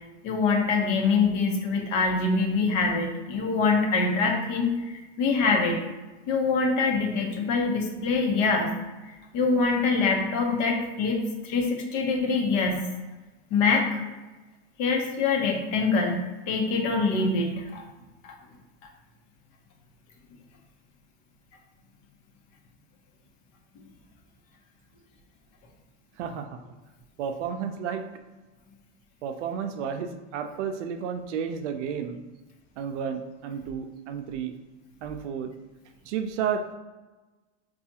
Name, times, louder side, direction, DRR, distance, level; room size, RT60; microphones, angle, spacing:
voice 1, 0.2-5.8 6.3-8.7 9.3-12.8 13.5-14.0 14.8-16.2 16.5-17.8, left 4 dB, 45° left, 0 dB, 0.9 m, -24 dB
voice 2, 26.2-26.6 27.2-28.0 29.2-32.2 32.8-34.5 35.0-35.5 36.1-36.7, right 7 dB, 75° right, 7 dB, 0.6 m, -32 dB
4.6 x 2.4 x 2.8 m, 1.2 s
supercardioid pair, 145°, 36 cm